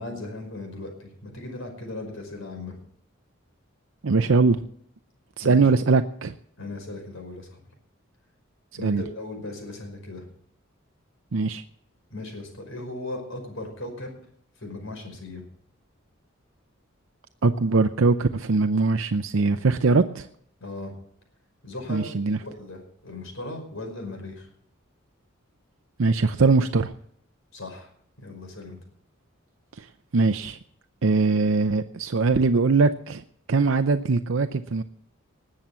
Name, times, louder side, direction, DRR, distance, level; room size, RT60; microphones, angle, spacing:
voice 1, 0.0-2.8 5.4-5.7 6.6-7.6 8.7-10.3 12.1-14.1 14.6-15.4 20.6-20.9 21.6-22.1 22.4-24.5 27.5-27.9 28.2-28.8, left 2 dB, 75° left, 3 dB, 5.2 m, -37 dB
voice 2, 4.0-4.6 5.4-6.3 8.8-9.0 11.3-11.6 17.4-20.3 21.9-22.4 26.0-26.9 29.8-29.9 30.1-30.6 31.0-33.2 33.5-34.8, right 4 dB, 75° right, 9 dB, 0.6 m, -21 dB
20.0 x 7.6 x 7.0 m, 0.66 s
head